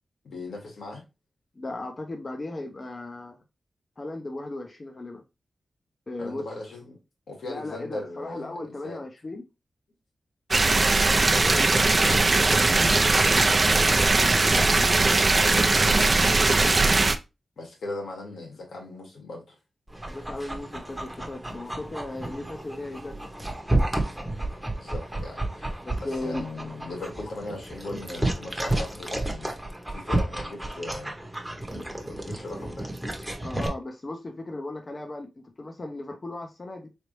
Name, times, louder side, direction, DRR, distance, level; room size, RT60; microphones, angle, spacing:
voice 1, 0.2-1.0 6.2-7.0 7.3-9.0 16.1-16.4 16.7-17.0 17.6-19.6 24.6-29.5 29.9-31.1 32.0-32.9, left 2 dB, 85° left, 1.7 m, -38 dB
voice 2, 1.6-3.4 4.0-5.2 6.1-6.4 7.5-9.4 11.2-14.9 20.1-23.3 25.8-26.5 33.4-36.9, left 2 dB, 35° left, 0.6 m, -37 dB
sound 1, 10.5-17.2, right 3 dB, 40° right, 0.5 m, -20 dB
Dog, 19.9-33.7, right 1 dB, 10° right, 0.9 m, -31 dB
3.9 x 3.3 x 3.0 m
wide cardioid pair, 90°, 0 cm